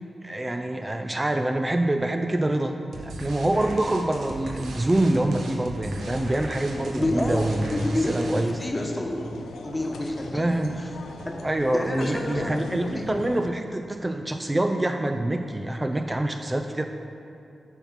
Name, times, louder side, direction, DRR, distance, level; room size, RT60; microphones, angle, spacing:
voice 1, 0.2-8.6 10.3-10.8 11.4-16.8, right 1 dB, 25° right, 5 dB, 0.4 m, -26 dB
sound 1, 2.9-8.7, right 1 dB, 80° right, 0.8 m, -38 dB
sound 2, 6.0-13.5, left 3 dB, 85° left, 0.5 m, -39 dB
voice 2, 6.9-9.3 9.6-10.5 10.8-10.9 11.3-11.5 11.7-12.7 12.9-13.1, left 1 dB, 25° left, 1 dB, 1.1 m, -29 dB
7.0 x 4.2 x 5.8 m, 2.8 s
cardioid pair, 45°, 0 cm